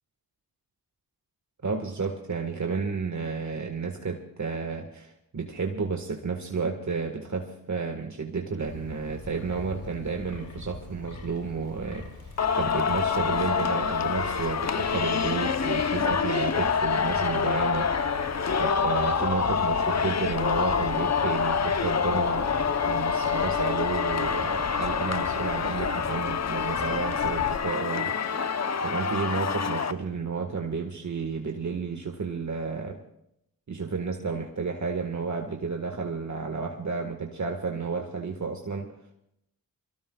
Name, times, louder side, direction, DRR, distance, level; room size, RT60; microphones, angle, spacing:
voice 1, 1.6-17.9 18.6-28.5 28.8-33.0 33.7-38.9, right 5 dB, 50° right, 3 dB, 1.7 m, -32 dB
Wind, 8.6-27.6, left 3 dB, 75° left, 3.1 m, -41 dB
Singing, 12.4-29.9, left 6 dB, 45° left, 0.9 m, -26 dB
24.0 x 17.5 x 2.4 m, 0.76 s
cardioid pair, 50°, 37 cm